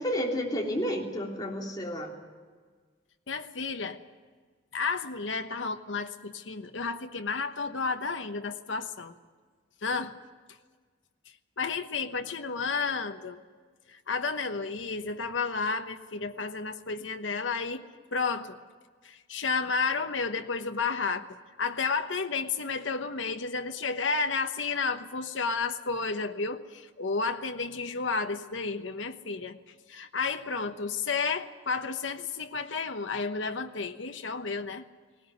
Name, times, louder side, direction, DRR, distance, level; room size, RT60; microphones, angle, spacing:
voice 1, 0.0-2.2, equal, 20° left, -1 dB, 3.3 m, -31 dB
voice 2, 3.3-4.0 4.7-9.1 9.8-10.2 11.6-13.4 13.9-18.6 19.0-21.3 21.6-29.6 29.9-34.9, left 4 dB, 85° left, 7 dB, 1.1 m, -32 dB
19.5 x 18.0 x 9.4 m, 1.5 s
head